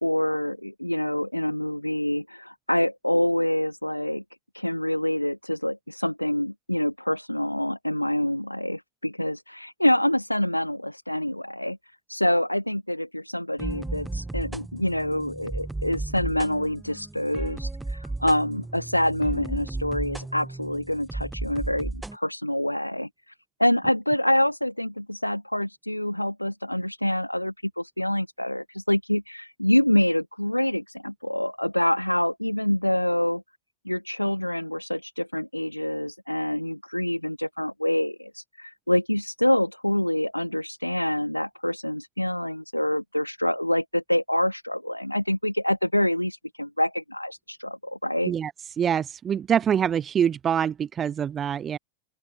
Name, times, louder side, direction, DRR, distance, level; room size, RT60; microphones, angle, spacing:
voice 1, 0.0-4.2 4.5-11.8 12.1-23.3 23.6-33.4 33.8-48.3, left 1 dB, 90° left, 1.2 m, -26 dB
sound 1, 13.6-22.2, right 2 dB, 5° right, 1.1 m, -34 dB
voice 2, 48.8-51.8, right 8 dB, 25° right, 0.5 m, -25 dB
open air
figure-of-eight pair, 90°, 0 cm